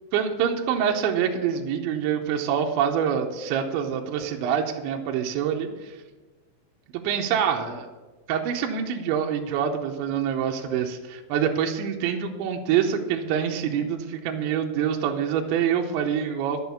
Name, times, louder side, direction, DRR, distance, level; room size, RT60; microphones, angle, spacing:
voice 1, 0.1-5.9 6.9-7.9 8.3-16.6, right 8 dB, 75° right, 3 dB, 3.0 m, -26 dB
11.0 x 7.1 x 6.9 m, 1.2 s
omnidirectional pair, 5.6 m